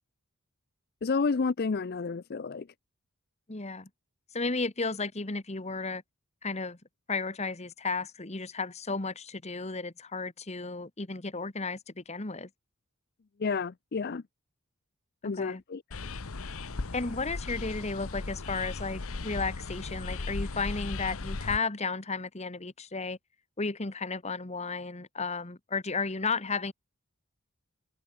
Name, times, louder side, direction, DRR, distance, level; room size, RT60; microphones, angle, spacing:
voice 1, 1.0-2.7 13.4-14.2 15.2-15.8, left 4 dB, 45° left, 0.5 m, -30 dB
voice 2, 3.5-3.9 4.3-6.0 6.4-6.8 7.1-12.5 15.2-15.6 16.9-23.2 23.6-26.7, left 4 dB, 30° left, 1.4 m, -33 dB
sound 1, 15.9-21.6, left 3 dB, 70° left, 1.0 m, -37 dB
head